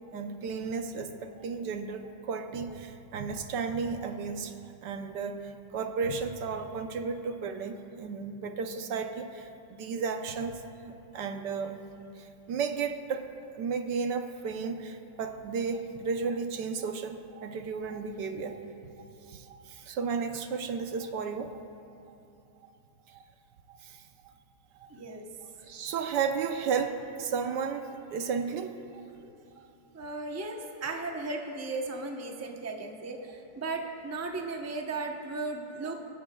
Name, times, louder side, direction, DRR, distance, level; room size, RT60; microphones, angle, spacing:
voice 1, 0.1-11.8 12.2-18.6 19.3-21.6 23.1-23.2 23.7-24.3 24.8-24.9 25.6-29.0, right 5 dB, 80° right, 6 dB, 1.4 m, -34 dB
voice 2, 24.9-25.3 29.2-29.3 29.9-36.1, right 3 dB, 15° right, 2 dB, 0.6 m, -36 dB
26.5 x 14.0 x 2.3 m, 2.7 s
omnidirectional pair, 1.9 m